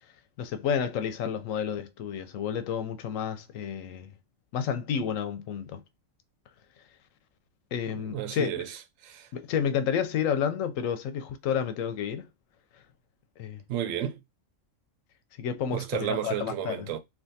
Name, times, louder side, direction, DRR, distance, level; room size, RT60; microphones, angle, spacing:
voice 1, 0.4-4.1 4.5-5.8 7.7-8.5 9.3-12.3 13.4-13.6 15.4-16.9, left 8 dB, 85° left, 1.0 m, -30 dB
voice 2, 7.9-9.3 13.7-14.2 15.7-17.0, right 10 dB, 85° right, 1.0 m, -32 dB
3.4 x 2.4 x 2.6 m
omnidirectional pair, 1.3 m